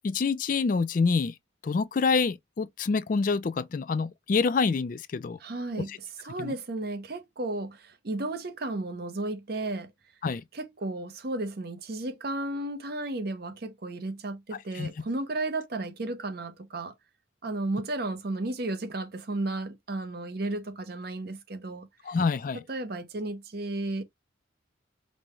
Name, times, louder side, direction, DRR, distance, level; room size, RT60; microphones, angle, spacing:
voice 1, 0.0-1.3 1.6-5.4 5.9-6.0 6.4-6.5 10.2-10.4 14.7-14.9 22.0-22.6, left 4 dB, 40° left, 0.3 m, -26 dB
voice 2, 5.4-5.9 6.2-9.9 10.5-16.9 17.4-21.9 22.5-24.0, right 2 dB, 50° right, 0.7 m, -33 dB
5.3 x 2.1 x 3.0 m
head